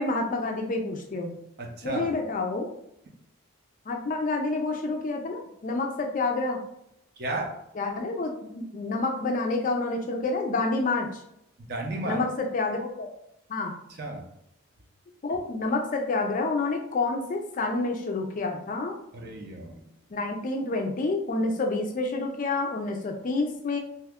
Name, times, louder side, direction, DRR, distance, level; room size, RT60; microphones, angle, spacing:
voice 1, 0.0-1.3 1.8-2.7 3.9-6.6 7.8-11.2 12.0-13.1 13.5-13.8 15.2-19.0 20.1-23.8, left 3 dB, 40° left, 3 dB, 0.4 m, -28 dB
voice 2, 1.6-2.1 7.2-7.5 11.6-12.2 14.0-14.2 19.1-19.8, right 2 dB, 50° right, 1 dB, 0.6 m, -33 dB
2.8 x 2.3 x 3.4 m, 0.80 s
head